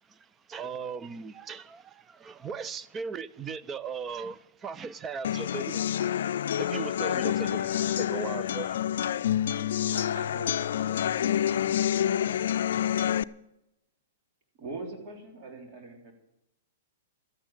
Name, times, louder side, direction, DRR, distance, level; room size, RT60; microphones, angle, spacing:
voice 1, 0.5-8.8, right 5 dB, 20° right, 0.6 m, -38 dB
sound 1, 5.2-13.2, left 10 dB, 70° left, 0.4 m, -28 dB
voice 2, 9.8-11.1, right 3 dB, 80° right, 2.8 m, -45 dB
voice 3, 14.6-16.1, right 3 dB, 45° right, 3.6 m, -41 dB
13.0 x 9.0 x 8.9 m
hypercardioid pair, 135°, 0 cm